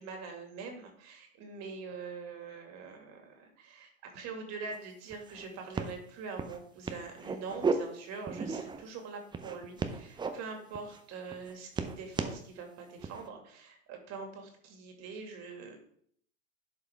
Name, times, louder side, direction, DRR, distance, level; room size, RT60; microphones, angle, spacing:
voice 1, 0.0-15.8, right 4 dB, 40° right, 3 dB, 2.3 m, -44 dB
sound 1, 4.7-4.8 5.1-5.4 5.7-5.9 6.4-6.6 6.9-7.7 8.3-8.9 9.3-10.3 10.7-11.0 11.3-12.4 13.0-13.3, right 5 dB, 10° right, 0.6 m, -34 dB
11.0 x 4.9 x 3.5 m, 0.62 s
hypercardioid pair, 95°, 39 cm